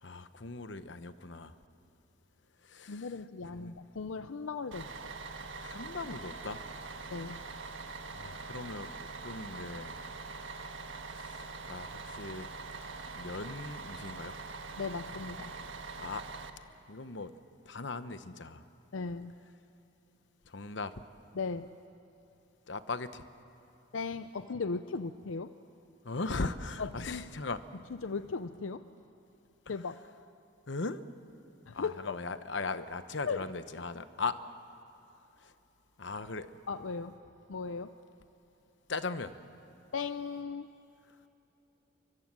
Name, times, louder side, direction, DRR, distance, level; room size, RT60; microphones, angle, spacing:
voice 1, 0.0-1.5 2.6-3.8 5.6-6.6 8.1-9.9 11.1-12.5 13.2-14.3 16.0-16.3 16.9-17.3 17.6-18.6 20.5-21.0 22.7-23.3 26.0-27.6 29.7-29.9 30.7-31.0 31.7-34.4 35.4-35.5 36.0-36.5 38.9-39.3, left 3 dB, 65° left, 11 dB, 1.0 m, -39 dB
voice 2, 2.9-5.2 7.1-7.4 14.8-15.5 18.9-19.3 21.4-21.7 23.9-25.5 26.8-27.2 28.0-28.9 29.7-30.0 31.7-32.2 33.3-33.4 36.7-37.2 37.5-37.9 39.9-40.7, left 4 dB, 80° left, 11 dB, 0.6 m, -37 dB
Bus, 4.7-16.5, right 4 dB, 70° right, 1.5 m, -43 dB
29.5 x 24.0 x 7.6 m, 3.0 s
head